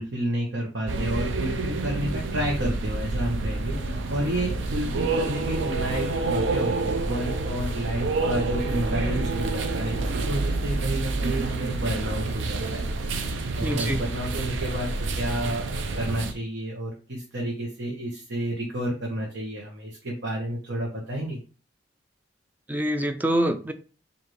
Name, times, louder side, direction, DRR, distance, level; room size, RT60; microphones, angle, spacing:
voice 1, 0.0-12.8 13.5-21.4, right 1 dB, 70° right, 1.0 m, -30 dB
sound 1, 0.9-16.3, right 3 dB, 85° right, 0.5 m, -28 dB
voice 2, 13.6-14.0 22.7-23.7, right 1 dB, 10° right, 0.4 m, -25 dB
4.9 x 2.6 x 3.0 m
head